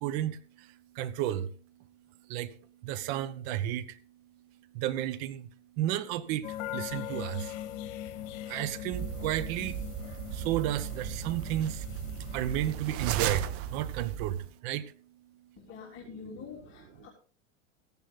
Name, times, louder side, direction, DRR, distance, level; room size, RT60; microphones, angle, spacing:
voice 1, 0.0-0.4 1.0-1.5 2.3-2.5 2.8-3.8 4.8-5.4 5.8-6.5 6.7-7.4 8.5-9.7 10.4-11.8 12.3-13.5 13.7-14.4 14.6-14.9, right 12 dB, 55° right, 1.3 m, -31 dB
sound 1, 6.4-13.2, left 11 dB, 60° left, 2.0 m, -41 dB
sound 2, 8.9-14.5, right 10 dB, 35° right, 1.0 m, -36 dB
voice 2, 15.6-17.1, left 6 dB, 30° left, 3.5 m, -46 dB
15.0 x 11.0 x 3.9 m
supercardioid pair, 125°, 38 cm